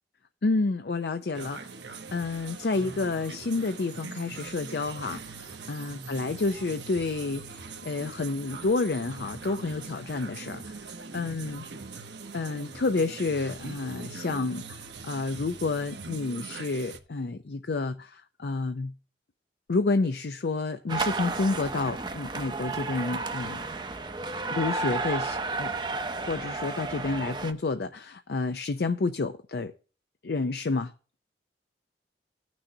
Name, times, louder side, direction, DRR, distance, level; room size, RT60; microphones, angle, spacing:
voice 1, 0.4-1.6 2.1-10.7 11.1-11.7 12.3-18.9 19.7-23.6 24.5-25.7 26.3-29.7 30.2-30.9, left 3 dB, 65° left, 0.5 m, -29 dB
sound 1, 1.3-17.0, right 4 dB, 90° right, 1.1 m, -42 dB
sound 2, 20.9-27.5, right 3 dB, 25° right, 0.6 m, -32 dB
15.5 x 6.2 x 2.8 m
head